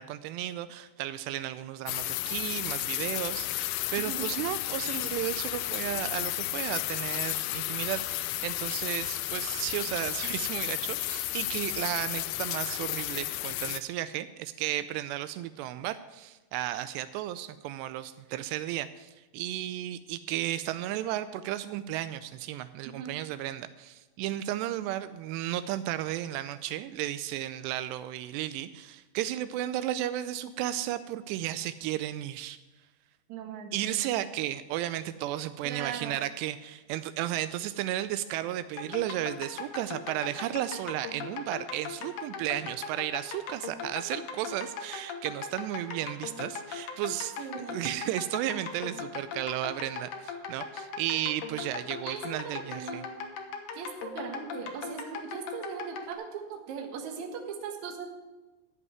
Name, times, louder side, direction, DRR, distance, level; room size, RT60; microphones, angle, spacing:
voice 1, 0.0-32.6 33.7-53.0, right 13 dB, 85° right, 12 dB, 2.7 m, -34 dB
sound 1, 1.9-13.8, left 16 dB, 90° left, 2.1 m, -33 dB
voice 2, 4.0-4.3 23.0-23.1 33.3-34.1 35.6-36.2 47.4-48.0 52.0-53.1 53.7-58.1, right 6 dB, 60° right, 3 dB, 2.2 m, -39 dB
sound 2, 38.8-56.1, left 6 dB, 65° left, 2.1 m, -39 dB
13.5 x 5.5 x 9.4 m, 1.2 s
omnidirectional pair, 4.9 m